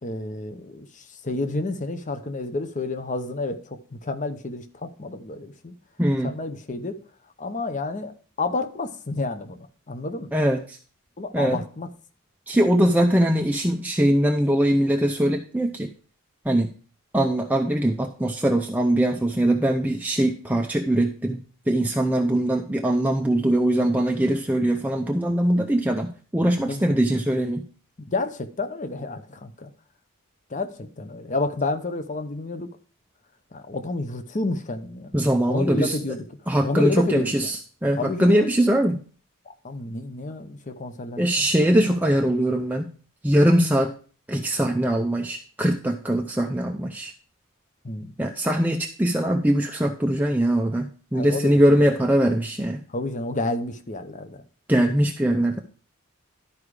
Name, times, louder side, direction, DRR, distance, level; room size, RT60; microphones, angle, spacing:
voice 1, 0.0-5.7 6.2-7.0 7.4-8.1 8.4-10.4 11.2-11.9 26.7-26.8 28.0-29.7 30.5-32.7 33.5-35.1 35.5-36.3 36.6-37.3 38.0-38.5 39.5-41.8 47.8-48.1 51.1-51.5 52.9-54.4, left 2 dB, 35° left, 9 dB, 0.8 m, -30 dB
voice 2, 6.0-6.4 10.3-10.8 11.3-11.6 12.5-15.9 16.4-16.7 17.1-27.7 35.1-36.0 36.5-39.0 41.2-42.9 43.2-43.9 44.3-47.1 48.2-52.8 54.7-55.6, right 1 dB, 5° right, 3 dB, 0.5 m, -22 dB
12.0 x 4.9 x 4.8 m, 0.41 s
head